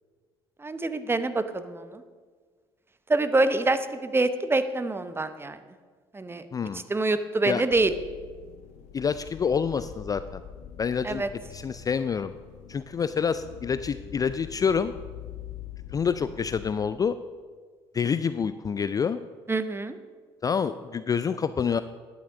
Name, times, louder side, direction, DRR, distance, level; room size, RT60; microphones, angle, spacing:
voice 1, 0.6-2.0 3.1-5.6 6.1-6.5 6.7-7.9 11.0-11.3 19.5-20.0, right 2 dB, 15° right, 11 dB, 0.8 m, -26 dB
voice 2, 6.5-6.8 7.5-7.6 8.9-10.4 10.8-11.2 11.5-12.3 12.7-14.9 15.9-17.2 17.9-19.2 20.4-21.8, left 6 dB, 25° left, 13 dB, 0.4 m, -27 dB
sound 1, 7.7-16.8, left 10 dB, 55° left, 0.7 m, -44 dB
10.5 x 7.1 x 6.2 m, 1.6 s
figure-of-eight pair, 55°, 14 cm